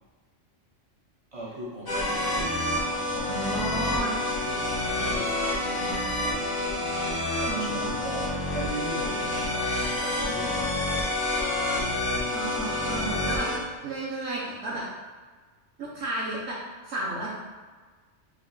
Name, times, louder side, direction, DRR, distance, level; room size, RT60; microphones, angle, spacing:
voice 1, 1.3-4.0 4.4-4.5 4.9-6.2 7.4-11.0, right 1 dB, 55° right, -5 dB, 0.3 m, -39 dB
sound 1, 1.9-13.6, left 1 dB, 35° left, 0.4 m, -28 dB
voice 2, 3.3-4.2 7.5-7.9 12.3-13.5 13.8-14.8 15.8-16.6 16.8-17.3, right 2 dB, 70° right, -5 dB, 0.9 m, -32 dB
5.4 x 2.2 x 2.5 m, 1.4 s
omnidirectional pair, 1.3 m